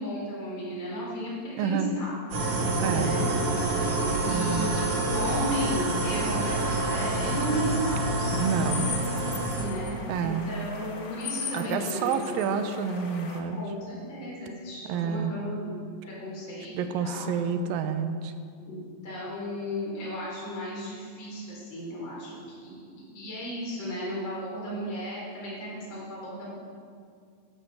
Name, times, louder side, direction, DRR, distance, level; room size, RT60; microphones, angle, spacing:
voice 1, 0.0-2.1 2.4-2.6 2.9-3.3 3.7-3.9 4.2-8.4 9.6-12.4 13.6-15.8 16.0-16.7 17.0-17.3 18.6-18.8 19.0-22.3 22.6-26.5, equal, 30° left, -6 dB, 4.3 m, -34 dB
voice 2, 1.6-1.9 2.8-3.2 4.2-4.7 8.3-8.9 10.1-10.6 11.5-13.6 14.9-15.3 16.7-18.3, right 6 dB, 80° right, 8 dB, 2.6 m, -29 dB
sound 1, 2.3-9.7, right 2 dB, 65° right, 3.8 m, -27 dB
sound 2, 8.3-13.4, left 5 dB, 50° left, 1.3 m, -39 dB
14.5 x 11.5 x 6.3 m, 2.2 s
omnidirectional pair, 4.1 m